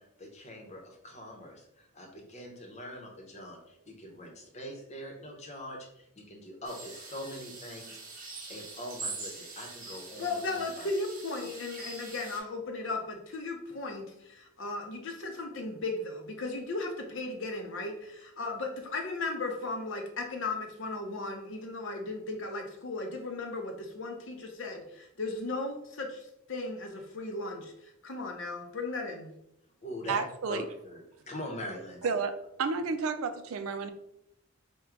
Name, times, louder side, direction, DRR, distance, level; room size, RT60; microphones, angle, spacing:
voice 1, 0.0-8.0 8.5-10.9 29.8-32.2, left 1 dB, 35° left, 0 dB, 0.9 m, -43 dB
sound 1, 6.6-12.4, right 3 dB, 40° right, 1.0 m, -43 dB
voice 2, 10.2-26.2 26.5-27.7 28.0-29.3, left 3 dB, 65° left, 4 dB, 0.7 m, -36 dB
voice 3, 30.1-30.6 32.0-32.3 32.6-33.9, right 5 dB, 85° right, 10 dB, 0.4 m, -31 dB
3.6 x 2.3 x 4.5 m, 0.80 s
head